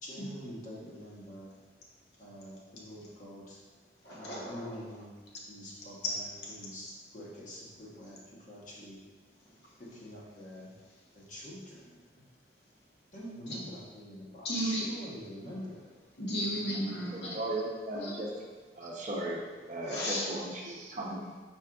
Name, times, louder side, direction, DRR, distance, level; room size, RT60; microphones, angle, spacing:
voice 1, 0.0-1.5 2.2-3.6 4.1-5.1 5.5-8.2 8.5-9.0 9.8-10.7 11.1-11.9 13.1-15.9, equal, 45° left, -5 dB, 1.0 m, -45 dB
voice 2, 4.0-4.7 6.0-6.2 6.4-6.5 13.5-13.6 14.4-14.9 16.2-17.4 17.9-18.3 19.9-20.3, equal, 75° left, -3 dB, 0.9 m, -34 dB
voice 3, 17.3-18.3 18.8-19.4 19.7-21.4, right 1 dB, 45° right, -2 dB, 0.7 m, -36 dB
4.7 x 4.4 x 2.3 m, 1.3 s
head